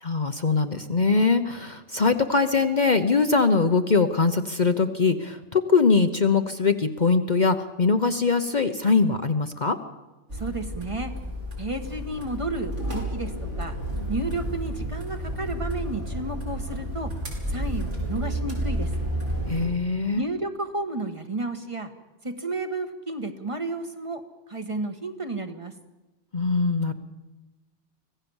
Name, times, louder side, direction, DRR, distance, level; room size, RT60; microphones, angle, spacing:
voice 1, 0.0-9.8 19.5-20.2 26.3-26.9, left 4 dB, 40° left, 7 dB, 1.0 m, -22 dB
voice 2, 10.3-11.1 11.6-13.8 14.1-17.1 17.5-18.9 20.1-21.9 22.2-24.2 24.5-25.7, right 2 dB, 25° right, 7 dB, 1.5 m, -32 dB
sound 1, 10.3-19.7, right 1 dB, 75° right, 5.2 m, -31 dB
25.0 x 16.5 x 7.2 m, 1.1 s
omnidirectional pair, 1.3 m